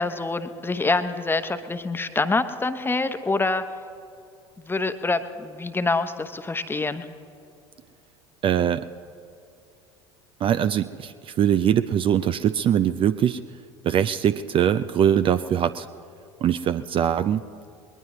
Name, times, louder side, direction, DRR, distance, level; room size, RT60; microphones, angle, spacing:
voice 1, 0.0-3.6 4.6-7.1, left 3 dB, 15° left, 9 dB, 1.0 m, -26 dB
voice 2, 8.4-8.9 10.4-13.4 13.8-15.9 16.4-17.4, right 9 dB, 35° right, 12 dB, 0.5 m, -22 dB
21.0 x 19.0 x 3.1 m, 2.6 s
figure-of-eight pair, 70°, 15 cm